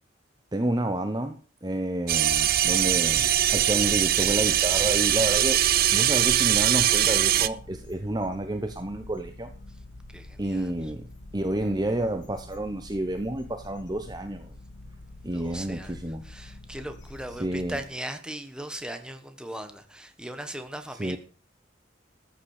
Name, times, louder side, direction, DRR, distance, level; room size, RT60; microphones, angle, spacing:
voice 1, 0.5-5.6 5.9-9.5 10.4-11.0 11.3-14.5 15.2-16.2 17.4-17.8 21.0-21.2, right 1 dB, 20° right, 0.9 m, -30 dB
sound 1, 2.1-7.5, right 11 dB, 50° right, 0.6 m, -22 dB
sound 2, 2.3-17.9, left 2 dB, 65° left, 3.3 m, -46 dB
voice 2, 10.1-10.9 15.3-21.2, right 1 dB, 5° right, 1.4 m, -39 dB
14.5 x 7.4 x 6.6 m
head